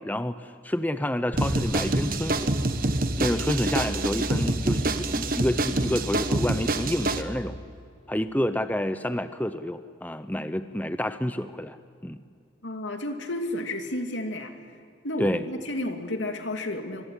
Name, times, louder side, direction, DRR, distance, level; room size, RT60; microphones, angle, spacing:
voice 1, 0.0-2.5 3.2-7.6 8.1-11.8 12.0-12.2 15.2-15.4, left 1 dB, 10° left, 11 dB, 0.7 m, -29 dB
Bass guitar, 1.3-7.6, equal, 15° right, 1.6 m, -36 dB
sound 1, 1.4-7.2, right 2 dB, 45° right, 1.3 m, -27 dB
voice 2, 12.6-14.5 15.0-17.0, left 1 dB, 80° left, 5 dB, 2.6 m, -31 dB
25.5 x 22.5 x 10.0 m, 2.3 s
head